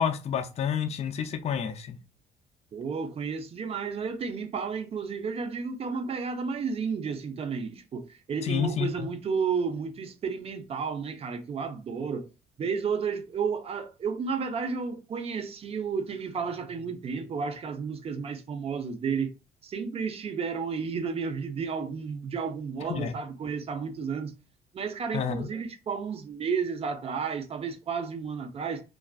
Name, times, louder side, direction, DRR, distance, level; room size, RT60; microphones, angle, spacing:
voice 1, 0.0-2.0 8.5-8.9 22.9-23.1 25.1-25.5, left 8 dB, 40° left, 0.4 m, -29 dB
voice 2, 2.7-12.3 12.6-19.3 19.6-24.3 24.7-28.8, right 5 dB, 35° right, 0.5 m, -32 dB
2.3 x 2.2 x 2.3 m
cardioid pair, 110°, 17 cm